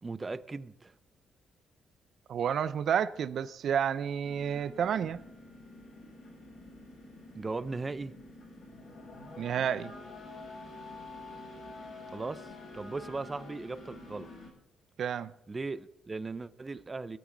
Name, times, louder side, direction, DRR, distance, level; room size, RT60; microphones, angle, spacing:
voice 1, 0.0-0.9 7.3-8.1 12.1-14.3 15.5-17.2, right 3 dB, 25° right, 0.7 m, -38 dB
voice 2, 2.3-5.2 9.4-9.9 15.0-15.3, right 8 dB, 65° right, 0.5 m, -30 dB
sound 1, 4.2-14.5, left 2 dB, 50° left, 6.3 m, -48 dB
23.0 x 9.3 x 3.9 m
cardioid pair, 120°, 0 cm